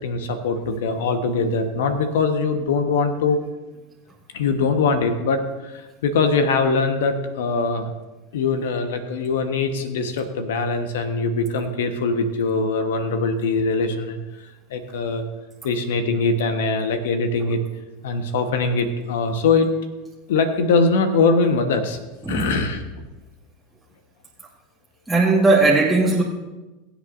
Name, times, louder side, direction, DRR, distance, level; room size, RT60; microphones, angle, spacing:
voice 1, 0.0-3.4 4.3-7.9 8.3-14.2 14.7-15.2 15.6-17.6 18.0-19.7 20.3-22.0 22.3-23.0, left 4 dB, 75° left, 7 dB, 1.2 m, -22 dB
voice 2, 22.2-22.6 25.1-26.2, right 3 dB, 5° right, -5 dB, 1.6 m, -17 dB
22.5 x 8.2 x 2.6 m, 1.1 s
hypercardioid pair, 90°, 0 cm